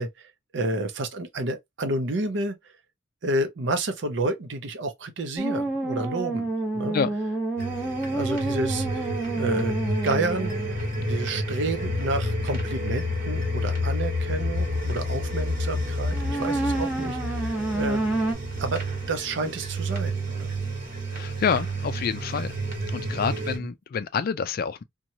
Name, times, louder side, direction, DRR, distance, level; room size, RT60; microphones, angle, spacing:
voice 1, 0.0-2.6 3.2-7.0 7.8-9.1 9.3-9.8 10.0-18.0 18.6-18.8 19.1-20.5 23.3-23.4, right 2 dB, 65° right, 0.6 m, -30 dB
sound 1, 5.4-10.8 16.1-18.3, right 2 dB, 5° right, 0.9 m, -29 dB
sound 2, 7.6-23.6, equal, 45° right, 1.2 m, -30 dB
voice 2, 21.1-22.5 22.9-24.8, left 6 dB, 50° left, 0.3 m, -27 dB
2.9 x 2.3 x 2.6 m
head